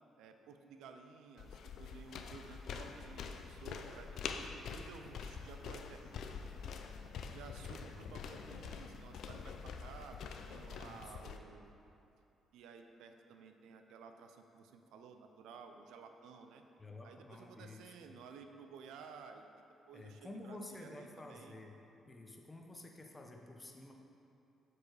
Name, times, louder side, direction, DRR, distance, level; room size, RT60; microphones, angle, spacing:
voice 1, 0.2-6.7 7.0-10.2 10.5-11.7 12.5-16.6 17.0-19.5 19.9-21.5, right 5 dB, 90° right, 6 dB, 0.5 m, -55 dB
sound 1, 1.4-11.4, left 6 dB, 70° left, 0.4 m, -46 dB
voice 2, 7.5-8.1 10.7-11.1 16.8-18.1 19.9-21.8 22.1-23.9, left 2 dB, 20° left, 1 dB, 0.8 m, -51 dB
7.3 x 4.7 x 4.7 m, 2.7 s
cardioid pair, 90°, 0 cm